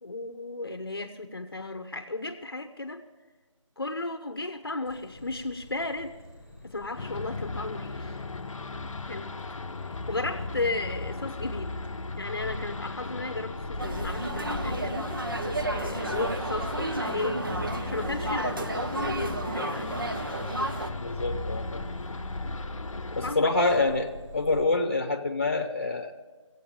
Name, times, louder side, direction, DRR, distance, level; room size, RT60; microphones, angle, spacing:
voice 1, 0.0-3.0 3.8-6.1 6.6-8.2 9.1-9.3 10.1-11.7 12.2-15.3 15.7-17.4 17.8-20.0 23.1-23.5, left 2 dB, 45° left, 6 dB, 0.8 m, -34 dB
sound 1, 4.8-24.6, left 1 dB, ahead, 2.3 m, -44 dB
sound 2, 7.0-23.3, left 3 dB, 80° left, 0.8 m, -36 dB
sound 3, 13.8-20.9, right 2 dB, 40° right, 1.0 m, -32 dB
voice 2, 21.0-21.8 23.1-26.1, left 3 dB, 25° left, 4 dB, 1.0 m, -26 dB
17.0 x 8.3 x 7.0 m, 1.3 s
figure-of-eight pair, 180°, 17 cm